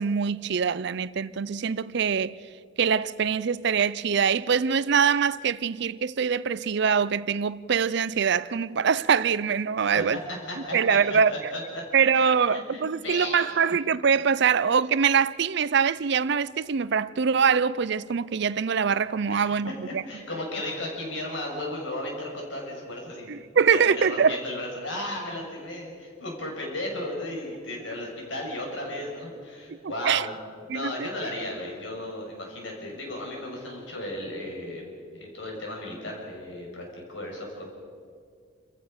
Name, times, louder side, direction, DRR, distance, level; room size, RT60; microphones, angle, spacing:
voice 1, 0.0-2.4 2.8-10.2 10.7-11.5 11.9-20.0 23.3-24.4 29.7-30.3 30.7-31.1, right 6 dB, 60° right, 0.5 m, -24 dB
voice 2, 10.3-11.8 12.1-13.6 19.3-19.5 20.1-23.3 23.7-30.3 30.6-34.8 35.1-37.6, left 1 dB, 70° left, 6.3 m, -35 dB
28.5 x 15.0 x 6.6 m
head